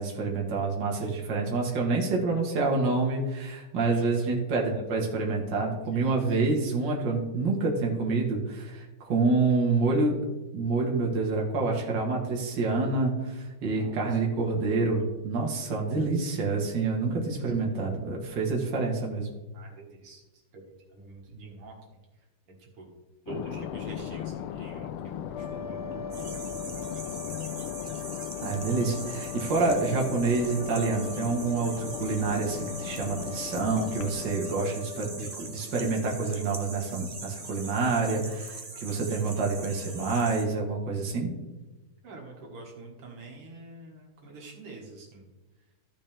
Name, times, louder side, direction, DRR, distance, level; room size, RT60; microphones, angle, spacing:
voice 1, 0.0-10.2 10.5-19.3 28.4-41.3, right 3 dB, 55° right, -1 dB, 2.2 m, -27 dB
voice 2, 3.9-4.4 5.9-6.4 13.7-14.2 19.5-21.8 22.5-23.0 23.3-27.2 42.0-45.3, right 3 dB, 80° right, -1 dB, 2.6 m, -47 dB
sound 1, 23.3-34.3, left 10 dB, 85° left, 1.5 m, -38 dB
sound 2, 25.2-35.9, left 8 dB, 30° left, 1.3 m, -42 dB
sound 3, 26.1-40.5, right 3 dB, 35° right, 0.6 m, -42 dB
13.5 x 6.4 x 3.4 m, 1.2 s
omnidirectional pair, 2.4 m